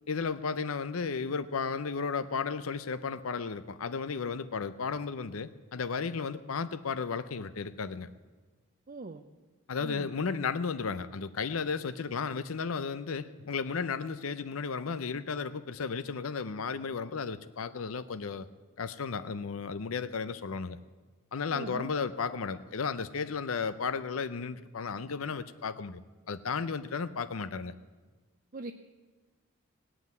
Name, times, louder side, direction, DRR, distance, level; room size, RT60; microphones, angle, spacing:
voice 1, 0.1-8.1 9.7-18.5 18.8-20.8 21.3-26.0 26.3-27.7, left 5 dB, 90° left, 12 dB, 0.6 m, -34 dB
voice 2, 8.9-9.2 9.8-10.1 21.5-21.9 28.5-28.7, right 2 dB, 40° right, 7 dB, 0.6 m, -41 dB
18.0 x 7.9 x 9.3 m, 1.3 s
head